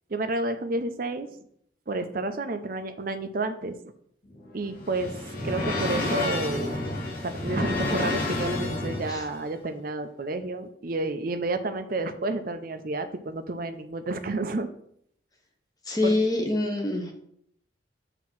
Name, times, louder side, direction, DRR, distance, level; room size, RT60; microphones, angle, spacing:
voice 1, 0.1-1.4 1.9-3.8 4.5-6.7 7.2-14.7 16.0-16.1, right 2 dB, 50° right, 9 dB, 0.6 m, -30 dB
sound 1, 4.3-9.4, left 2 dB, 45° left, 1.6 m, -30 dB
voice 2, 15.9-17.1, left 2 dB, 20° left, 2 dB, 1.0 m, -25 dB
7.4 x 3.0 x 5.9 m, 0.69 s
head